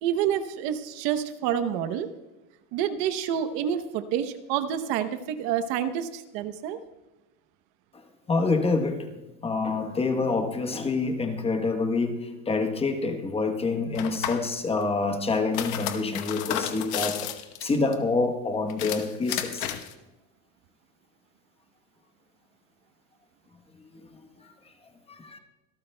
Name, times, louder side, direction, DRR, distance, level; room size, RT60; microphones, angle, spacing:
voice 1, 0.0-2.1 2.7-6.8, right 9 dB, 60° right, 10 dB, 0.9 m, -28 dB
voice 2, 8.3-9.0 9.4-12.2 12.5-17.2 17.6-19.7 25.1-25.4, left 3 dB, 15° left, 5 dB, 1.0 m, -26 dB
sound 1, 13.9-14.5 15.3-17.9 18.7-19.9, left 11 dB, 55° left, 1.0 m, -32 dB
25.0 x 13.5 x 2.2 m, 1.0 s
cardioid pair, 150°, 37 cm